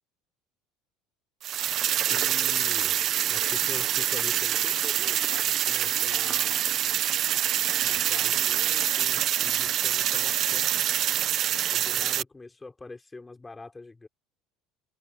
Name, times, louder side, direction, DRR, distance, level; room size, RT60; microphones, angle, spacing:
sound 1, 1.4-12.2, right 11 dB, 50° right, 1.1 m, -26 dB
voice 1, 2.1-3.0 3.3-6.6 7.8-11.0 11.7-14.1, left 3 dB, 15° left, 4.1 m, -44 dB
supercardioid pair, 110°, 0 cm